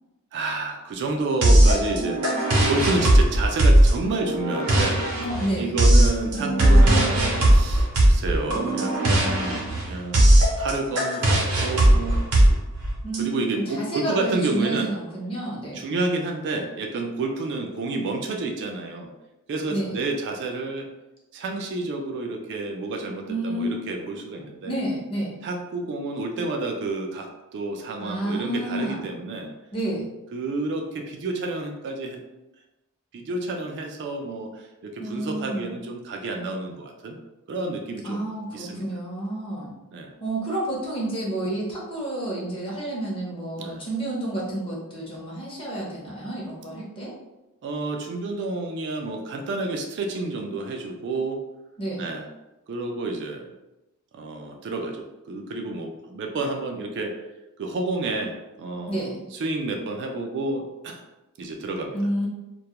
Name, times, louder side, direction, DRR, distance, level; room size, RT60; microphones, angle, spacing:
voice 1, 0.3-2.2 2.7-5.0 5.6-12.2 12.5-12.6 13.2-14.9 15.7-19.1 19.5-20.9 21.3-24.7 25.4-29.5 30.3-32.2 33.1-37.2 37.5-38.8 39.9-40.1 43.6-43.8 47.6-51.4 52.0-52.3 52.7-53.5 54.1-57.1 57.6-61.0 61.4-62.0, right 3 dB, 50° right, 3 dB, 0.3 m, -30 dB
sound 1, 1.4-13.2, right 1 dB, 80° right, 0.7 m, -18 dB
voice 2, 5.2-5.7 13.0-15.9 19.7-20.0 23.3-23.7 24.4-25.3 28.0-29.0 29.7-30.1 35.0-35.7 38.0-39.7 40.2-47.1 51.8-52.0 58.9-59.3 61.9-62.3, right 1 dB, 25° left, -5 dB, 0.7 m, -30 dB
2.2 x 2.0 x 2.8 m, 0.99 s
head